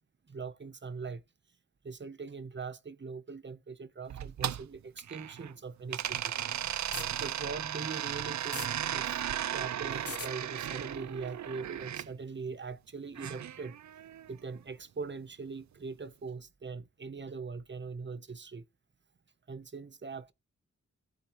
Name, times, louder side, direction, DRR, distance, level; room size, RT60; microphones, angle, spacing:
voice 1, 0.3-1.2 1.8-6.4 7.2-9.1 9.5-13.8 14.3-18.6 19.5-20.3, right 4 dB, 40° right, 0.9 m, -41 dB
sound 1, 4.1-5.5 5.9-12.1 13.2-14.3, right 10 dB, 70° right, 0.5 m, -36 dB
sound 2, 6.8-7.1 8.4-8.7 9.9-10.3, left 5 dB, 50° left, 1.2 m, -39 dB
16.0 x 7.5 x 3.0 m
wide cardioid pair, 130°, 29 cm